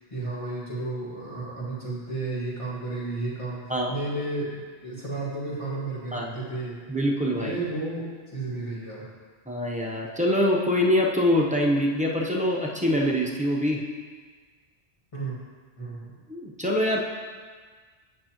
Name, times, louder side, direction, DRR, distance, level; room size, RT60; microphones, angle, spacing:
voice 1, 0.1-6.8 7.3-9.0 15.1-15.4 15.8-16.1, right 2 dB, 30° left, -8 dB, 1.9 m, -32 dB
voice 2, 6.9-7.6 9.5-13.8 16.3-17.0, left 1 dB, 10° right, -3 dB, 0.5 m, -24 dB
9.2 x 6.0 x 2.9 m, 1.5 s
omnidirectional pair, 1.1 m